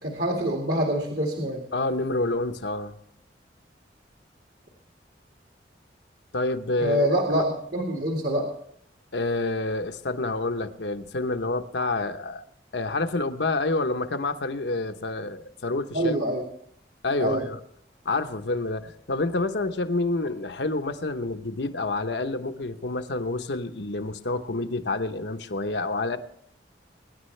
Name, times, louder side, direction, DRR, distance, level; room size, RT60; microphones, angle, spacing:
voice 1, 0.0-1.6 6.8-8.5 15.9-16.4 17.2-17.5, right 1 dB, 60° right, 1 dB, 2.1 m, -25 dB
voice 2, 1.7-2.9 6.3-7.1 7.3-7.4 9.1-12.4 12.7-16.2 17.0-17.6 18.0-26.2, left 2 dB, 80° left, 8 dB, 1.0 m, -28 dB
24.0 x 10.5 x 3.3 m, 0.70 s
head